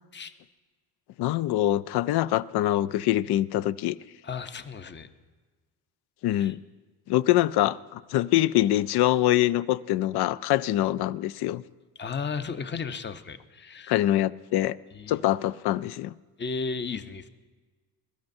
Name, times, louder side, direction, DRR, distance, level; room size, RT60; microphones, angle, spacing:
voice 1, 1.2-4.0 6.2-6.6 7.1-11.6 13.9-14.8 15.1-16.1, left 14 dB, 65° left, 17 dB, 0.5 m, -24 dB
voice 2, 4.2-5.1 6.3-6.5 12.0-14.0 14.9-15.2 16.4-17.3, left 5 dB, 25° left, 10 dB, 0.7 m, -34 dB
22.0 x 12.5 x 2.7 m, 1.4 s
cardioid pair, 100°, 42 cm